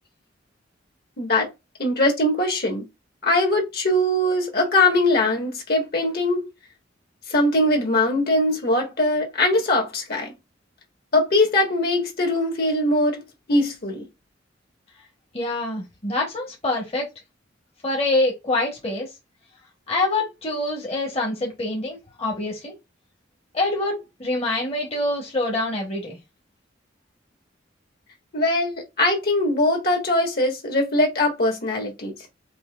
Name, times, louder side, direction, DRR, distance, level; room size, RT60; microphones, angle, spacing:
voice 1, 1.2-1.5 1.8-2.8 3.2-6.5 7.3-10.3 11.1-13.2 13.5-14.0 28.3-32.1, left 1 dB, 55° left, 1.5 m, -21 dB
voice 2, 15.3-17.1 17.8-19.1 19.9-22.8 23.5-26.2, left 2 dB, 35° left, 1.1 m, -25 dB
5.4 x 2.6 x 2.4 m
head